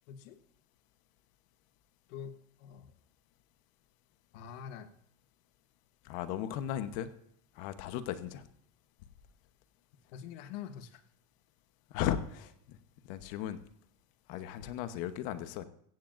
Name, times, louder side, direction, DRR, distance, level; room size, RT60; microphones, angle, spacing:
voice 1, 0.1-0.4 2.1-2.9 4.3-4.9 10.1-11.0, left 8 dB, 90° left, 9 dB, 1.2 m, -45 dB
voice 2, 6.0-7.1 7.5-8.5 11.9-12.8 13.0-13.6 14.3-15.6, left 11 dB, 60° left, 11 dB, 1.1 m, -36 dB
16.0 x 15.5 x 2.6 m, 0.67 s
cardioid pair, 175°, 36 cm